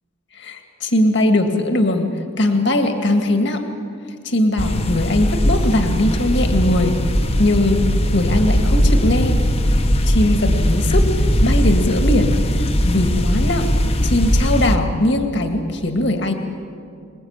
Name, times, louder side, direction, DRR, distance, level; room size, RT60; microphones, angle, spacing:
voice 1, 0.3-3.6 4.2-7.0 7.4-7.8 8.1-9.4 10.0-11.1 11.4-13.7 14.0-16.3, left 1 dB, 55° left, 5 dB, 2.0 m, -20 dB
sound 1, 4.6-14.8, equal, 30° left, 1.1 m, -18 dB
27.0 x 20.5 x 8.9 m, 2.4 s
head